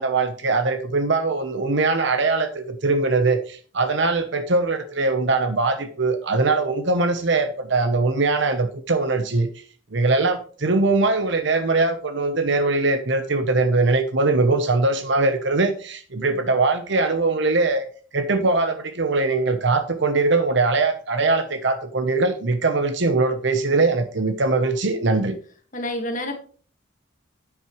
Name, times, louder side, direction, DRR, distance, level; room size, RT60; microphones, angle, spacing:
voice 1, 0.0-9.5 9.9-17.8 18.1-25.3, right 3 dB, 60° right, 8 dB, 0.9 m, -21 dB
voice 2, 25.7-26.4, left 1 dB, 40° left, 5 dB, 1.9 m, -28 dB
10.5 x 9.0 x 3.2 m, 0.42 s
head